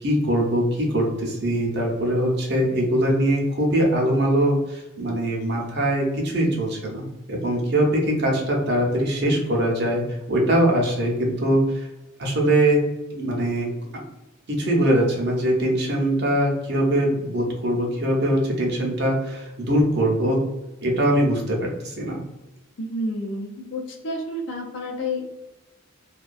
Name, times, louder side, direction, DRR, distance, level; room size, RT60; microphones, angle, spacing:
voice 1, 0.0-10.0 10.3-11.9 12.2-12.8 13.1-13.7 14.5-20.4 20.8-22.2, right 1 dB, 55° right, 0 dB, 0.6 m, -22 dB
voice 2, 22.8-25.3, left 1 dB, 60° left, 1 dB, 0.5 m, -30 dB
2.3 x 2.2 x 2.5 m, 1.0 s
head